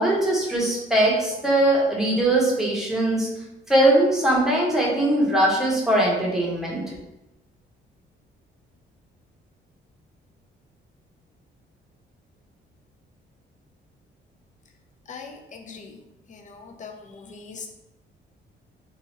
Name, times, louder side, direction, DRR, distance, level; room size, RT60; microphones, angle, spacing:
voice 1, 0.0-3.3 3.7-6.8, right 1 dB, ahead, -4 dB, 0.9 m, -21 dB
voice 2, 15.1-17.7, left 5 dB, 40° left, 3 dB, 0.5 m, -41 dB
2.7 x 2.4 x 3.0 m, 0.95 s
cardioid pair, 90°, 20 cm